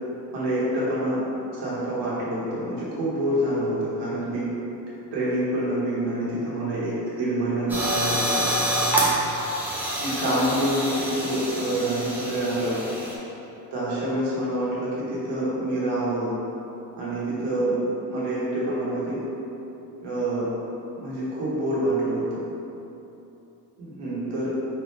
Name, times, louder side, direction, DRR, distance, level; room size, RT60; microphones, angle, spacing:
voice 1, 0.3-1.2 1.5-4.5 5.1-8.5 10.0-12.8 13.7-16.3 17.0-17.7 18.1-19.2 20.0-20.5 20.9-22.4 23.8-24.5, right 1 dB, 85° right, -8 dB, 1.4 m, -27 dB
sound 1, 7.7-13.1, right 1 dB, 5° right, 0.7 m, -27 dB
3.9 x 3.2 x 3.3 m, 3.0 s
cardioid pair, 115°, 39 cm